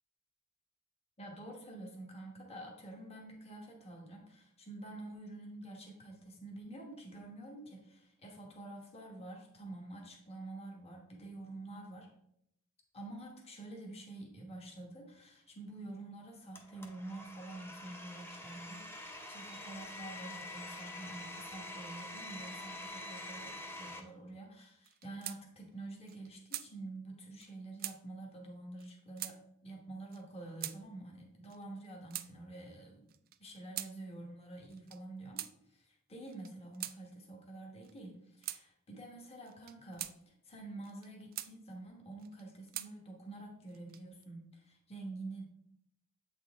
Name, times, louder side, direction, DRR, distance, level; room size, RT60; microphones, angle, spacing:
voice 1, 1.2-12.1 12.9-29.4 29.6-33.1 33.4-35.4 35.7-45.4, right 2 dB, 30° left, 0 dB, 1.2 m, -48 dB
Domestic sounds home sounds, 16.5-24.0, left 1 dB, 10° left, 0.7 m, -46 dB
sound 1, 24.8-25.4 25.7-25.8 26.1-26.7 27.4-27.5 27.8-28.0 28.8-28.9 29.2-29.4 30.1-30.2 30.6-30.8 31.5-32.3 33.1-33.9 34.7-35.0 35.4-35.5 36.3-37.0 37.8-38.0 38.4-38.6 39.5-40.2 40.8-41.5 42.2-42.9 43.7-44.2, right 14 dB, 45° right, 0.3 m, -43 dB
8.0 x 4.2 x 3.5 m, 0.76 s
head